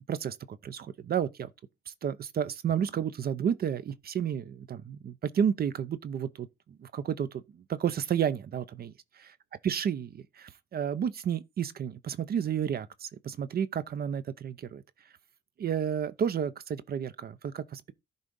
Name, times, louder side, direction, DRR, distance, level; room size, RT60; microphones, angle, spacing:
voice 1, 0.0-1.5 1.9-8.9 9.6-14.8 15.6-17.9, right 8 dB, 50° right, 0.6 m, -31 dB
11.0 x 3.9 x 5.3 m
cardioid pair, 90°, 20 cm